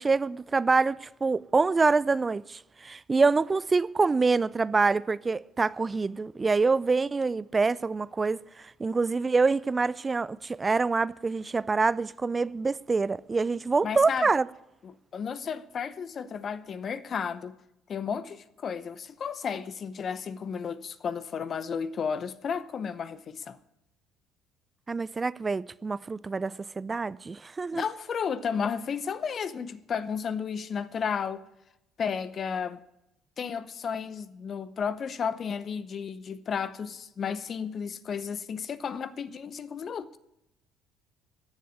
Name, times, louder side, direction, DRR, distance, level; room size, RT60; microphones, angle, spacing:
voice 1, 0.0-14.5 24.9-27.8, right 4 dB, 30° right, 0.4 m, -26 dB
voice 2, 13.8-14.3 14.8-17.5 17.9-23.6 27.7-31.4 32.0-32.8 33.4-40.2, left 6 dB, 45° left, 0.8 m, -33 dB
14.0 x 7.6 x 9.5 m
hypercardioid pair, 60°, 0 cm